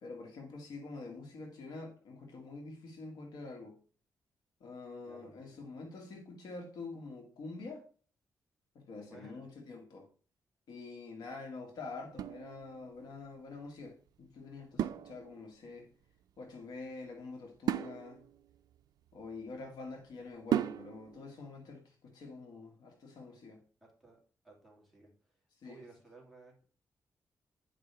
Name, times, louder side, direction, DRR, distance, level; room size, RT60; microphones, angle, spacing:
voice 1, 0.0-3.8 4.6-7.9 8.8-10.1 10.7-15.9 16.4-18.2 19.1-23.6 25.6-25.8, left 3 dB, 90° left, 1.8 m, -46 dB
voice 2, 5.0-5.8 9.0-9.4 23.8-24.2 24.4-26.7, right 3 dB, ahead, 2.8 m, -57 dB
sound 1, 12.1-13.1 14.8-15.7 17.7-19.7 20.5-21.2, right 11 dB, 80° right, 0.4 m, -36 dB
9.9 x 5.4 x 3.4 m
wide cardioid pair, 145°, 7 cm